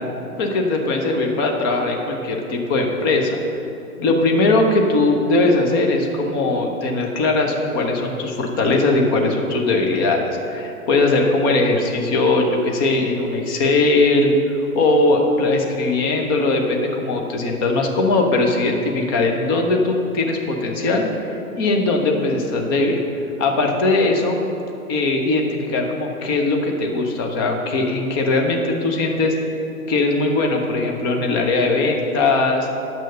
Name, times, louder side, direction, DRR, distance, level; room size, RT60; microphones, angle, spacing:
voice 1, 0.4-3.4 4.0-14.3 14.7-23.0 23.4-24.4 24.9-29.3 29.9-32.7, left 2 dB, 15° left, 2 dB, 0.6 m, -20 dB
8.9 x 6.7 x 6.7 m, 2.8 s
figure-of-eight pair, 120°, 45 cm